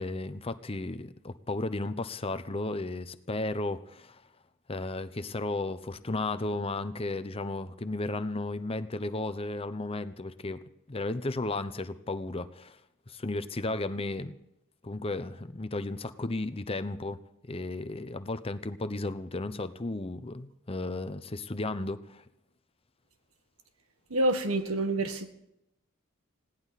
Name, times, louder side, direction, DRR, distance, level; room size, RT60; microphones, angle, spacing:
voice 1, 0.0-4.2 4.7-10.6 10.9-12.8 13.1-14.3 14.8-17.2 17.5-22.2, left 2 dB, 30° left, 0.8 m, -34 dB
voice 2, 24.1-25.3, right 1 dB, 85° right, 1.7 m, -27 dB
20.5 x 17.0 x 4.2 m
head